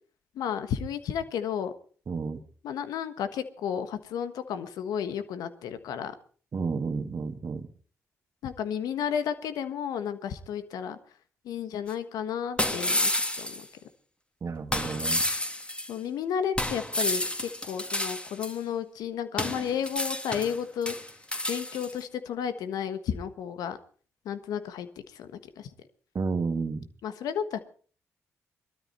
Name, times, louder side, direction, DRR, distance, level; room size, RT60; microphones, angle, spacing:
voice 1, 0.3-1.7 2.6-6.1 8.4-11.0 11.4-13.7 15.9-20.9 21.5-23.8 24.2-25.7 27.0-27.6, left 8 dB, 80° left, 10 dB, 1.4 m, -32 dB
voice 2, 2.1-2.4 6.5-7.7 14.4-15.2 26.1-26.9, right 4 dB, 50° right, 7 dB, 1.6 m, -31 dB
sound 1, 11.9-12.0 12.6-13.6 14.7-15.9 16.6-18.5 19.4-20.6 20.8-21.9, left 1 dB, 15° left, 2.9 m, -30 dB
20.0 x 13.0 x 4.3 m, 0.41 s
hypercardioid pair, 40°, 7 cm